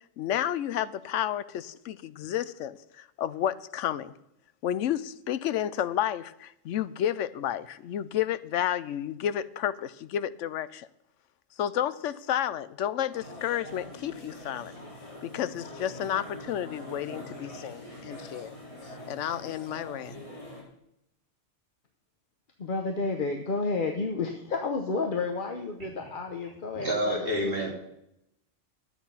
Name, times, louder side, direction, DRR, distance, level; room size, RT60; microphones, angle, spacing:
voice 1, 0.2-4.1 4.6-10.9 11.6-14.7 15.2-18.5 19.1-20.2, left 11 dB, 80° left, 16 dB, 0.9 m, -31 dB
sound 1, 13.1-20.6, left 1 dB, 25° left, 3.3 m, -44 dB
voice 2, 22.6-27.3, left 3 dB, 45° left, 4 dB, 1.0 m, -31 dB
voice 3, 26.7-27.7, equal, 45° right, -1 dB, 3.1 m, -28 dB
12.0 x 8.5 x 5.6 m, 0.81 s
omnidirectional pair, 1.3 m